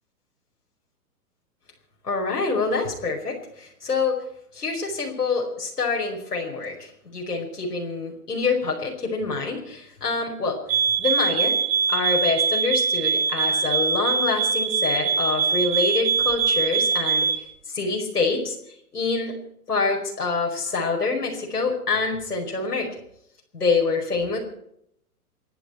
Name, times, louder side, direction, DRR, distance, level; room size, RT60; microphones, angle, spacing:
voice 1, 2.0-4.2 4.5-10.6 11.0-11.5 11.9-17.3 17.7-18.6 18.9-19.4 19.7-22.9 23.5-24.4, left 4 dB, 85° left, -1 dB, 5.2 m, -26 dB
sound 1, 10.7-17.4, right 6 dB, 55° right, 1.9 m, -23 dB
29.0 x 11.0 x 4.5 m, 0.73 s
figure-of-eight pair, 120°, 46 cm